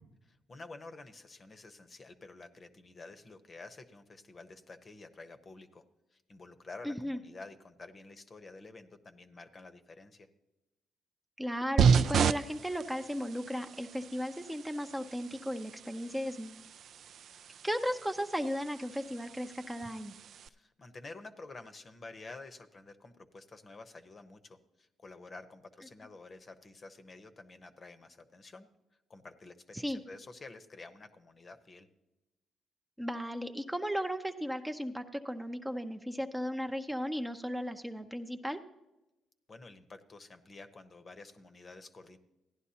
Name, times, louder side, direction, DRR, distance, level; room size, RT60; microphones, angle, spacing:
voice 1, 0.5-5.8 6.1-10.3 20.5-28.7 29.1-31.9 39.5-42.2, left 3 dB, 35° left, 9 dB, 0.8 m, -50 dB
voice 2, 6.8-7.2 11.4-16.6 17.6-20.1 29.7-30.0 33.0-38.6, equal, 5° right, 6 dB, 0.6 m, -35 dB
sound 1, 11.8-20.5, right 7 dB, 65° right, 0.3 m, -33 dB
16.0 x 11.0 x 2.8 m, 0.99 s
cardioid pair, 90°, 0 cm